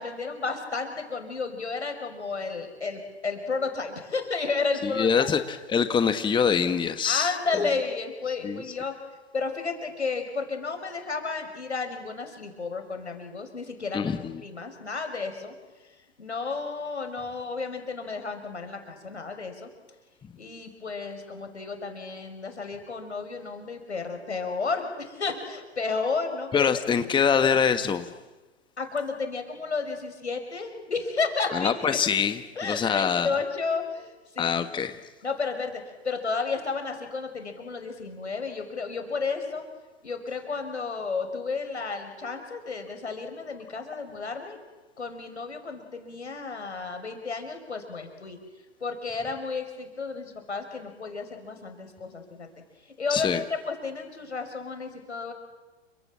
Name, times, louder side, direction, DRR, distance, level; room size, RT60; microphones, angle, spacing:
voice 1, 0.0-5.3 7.0-8.9 9.3-14.0 14.4-15.5 16.2-19.7 20.4-26.7 28.8-31.8 32.6-34.5 35.2-39.6 40.0-44.6 45.0-48.4 48.8-52.5 53.0-55.3, left 4 dB, 85° left, 6 dB, 6.1 m, -32 dB
voice 2, 4.8-7.3 8.4-8.6 13.9-14.4 26.5-28.1 31.5-33.3 34.4-35.0 53.1-53.4, left 7 dB, 15° left, 9 dB, 1.5 m, -24 dB
30.0 x 25.5 x 7.6 m, 1.2 s
figure-of-eight pair, 105°, 33 cm